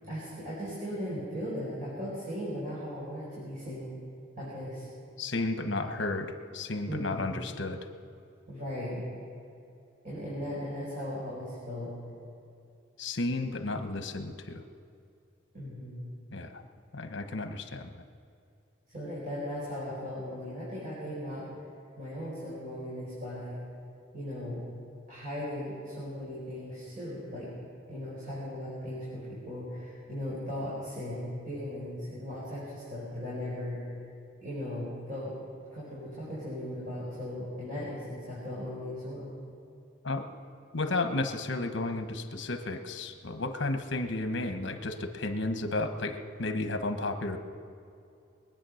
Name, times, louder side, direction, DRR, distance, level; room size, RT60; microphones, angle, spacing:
voice 1, 0.1-3.9 4.4-4.9 6.9-7.4 8.5-9.0 10.0-11.9 15.5-16.0 18.9-21.5 22.0-23.6 24.1-24.6 25.1-27.5 27.9-33.8 34.4-35.3 35.7-39.3, equal, 40° right, -9 dB, 4.9 m, -37 dB
voice 2, 5.2-7.8 13.0-14.6 16.3-16.6 16.9-17.9 40.0-40.3 40.7-47.4, left 2 dB, 70° left, 7 dB, 1.1 m, -33 dB
22.5 x 9.1 x 6.4 m, 2.6 s
head